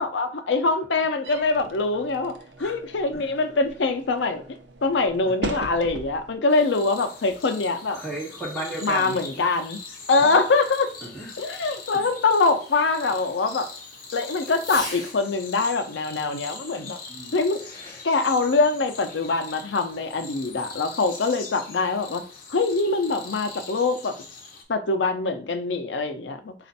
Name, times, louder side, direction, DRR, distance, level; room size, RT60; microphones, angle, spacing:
voice 1, 0.0-2.3 2.6-8.0 8.8-9.8 10.1-10.9 11.4-13.7 14.1-17.0 17.3-17.6 18.0-22.2 22.5-24.2 24.7-26.5, left 3 dB, 80° left, 0.6 m, -24 dB
sound 1, 1.2-6.4, right 2 dB, 75° right, 0.6 m, -38 dB
Fireworks, 6.4-15.2 16.7-16.8 17.4-18.2, left 2 dB, 25° left, 1.8 m, -45 dB
sound 2, 6.5-24.6, left 4 dB, 55° left, 0.8 m, -42 dB
voice 2, 7.9-9.2 10.2-10.3 11.0-11.3 11.9-12.0 17.1-17.3, right 1 dB, 5° left, 2.0 m, -34 dB
4.2 x 2.5 x 4.0 m
head